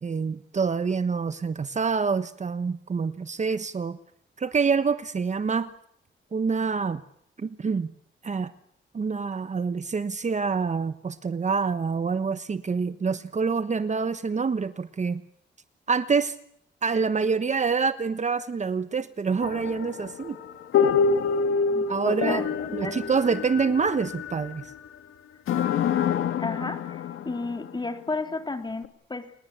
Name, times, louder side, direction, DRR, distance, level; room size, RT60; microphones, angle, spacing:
voice 1, 0.0-4.0 4.4-5.7 6.3-7.0 7.4-7.9 8.2-8.5 8.9-15.2 15.9-16.4 16.8-20.4 21.9-24.7, right 5 dB, 35° right, 12 dB, 1.2 m, -26 dB
sound 1, 19.4-24.9 25.5-27.8 28.8-28.9, left 6 dB, 85° left, 1.9 m, -27 dB
voice 2, 21.7-23.0 26.4-29.3, left 3 dB, 20° left, 8 dB, 3.2 m, -33 dB
29.5 x 20.5 x 8.2 m, 0.70 s
cardioid pair, 105°, 20 cm